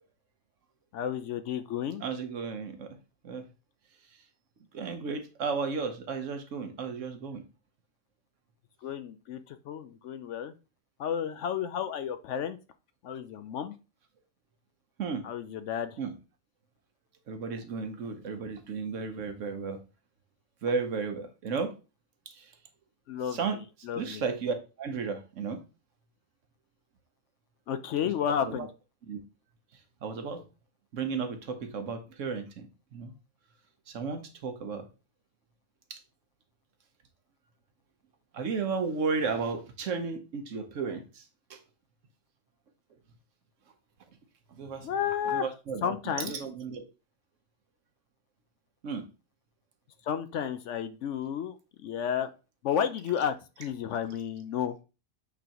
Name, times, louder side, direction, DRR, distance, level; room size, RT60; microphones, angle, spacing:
voice 1, 0.9-2.0 8.8-10.5 11.0-12.6 13.0-13.8 15.2-15.9 23.1-23.4 23.8-24.2 27.7-28.7 44.8-45.4 45.8-46.3 50.0-51.5 51.8-52.3 52.6-54.8, left 8 dB, 70° left, 10 dB, 0.8 m, -32 dB
voice 2, 2.0-3.0 3.2-3.5 4.7-7.4 15.0-15.2 16.0-16.1 17.3-19.8 20.6-21.7 22.3-22.5 23.3-23.6 23.9-25.6 28.0-28.7 29.1-29.2 30.0-30.4 30.9-33.1 33.9-34.9 35.9-36.0 38.3-41.6 44.5-44.9 45.2-46.8 48.8-49.0, right 5 dB, 65° right, 7 dB, 1.2 m, -34 dB
8.2 x 3.9 x 2.9 m, 0.31 s
omnidirectional pair, 1.4 m